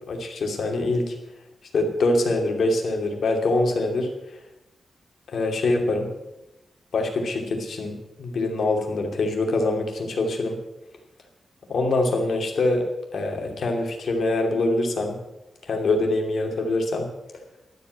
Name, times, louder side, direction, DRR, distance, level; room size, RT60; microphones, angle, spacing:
voice 1, 0.1-1.1 1.7-4.1 5.3-6.1 6.9-10.6 11.7-12.8 13.1-15.2 15.6-17.1, left 2 dB, 60° left, 2 dB, 2.6 m, -24 dB
12.0 x 8.1 x 8.8 m, 0.98 s
wide cardioid pair, 180°, 0 cm